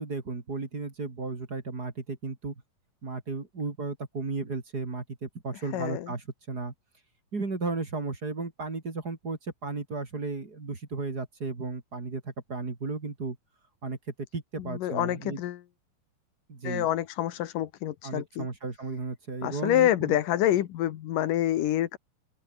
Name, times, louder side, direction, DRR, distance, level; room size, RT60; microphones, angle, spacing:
voice 1, 0.0-2.5 3.0-6.7 7.3-13.4 13.8-14.0 14.3-15.4 16.5-16.9 18.0-20.2, right 3 dB, 30° right, 3.4 m, -34 dB
voice 2, 5.7-6.1 14.6-15.6 16.6-18.5 19.4-22.0, left 13 dB, 90° left, 2.9 m, -27 dB
open air
omnidirectional pair, 3.7 m